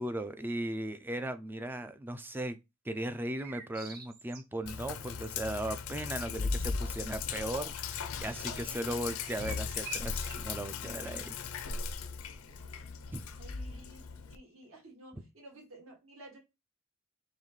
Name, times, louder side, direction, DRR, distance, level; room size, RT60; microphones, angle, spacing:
voice 1, 0.0-2.6 2.8-11.4 13.1-13.3, right 1 dB, 10° right, 0.3 m, -37 dB
sound 1, 3.4-4.7 9.2-10.7, right 5 dB, 45° right, 0.7 m, -46 dB
Sink (filling or washing), 4.7-14.4, left 5 dB, 80° left, 0.5 m, -38 dB
voice 2, 8.5-9.6 13.3-14.0 14.3-16.4, right 1 dB, 65° right, 2.0 m, -53 dB
4.0 x 3.0 x 3.1 m
head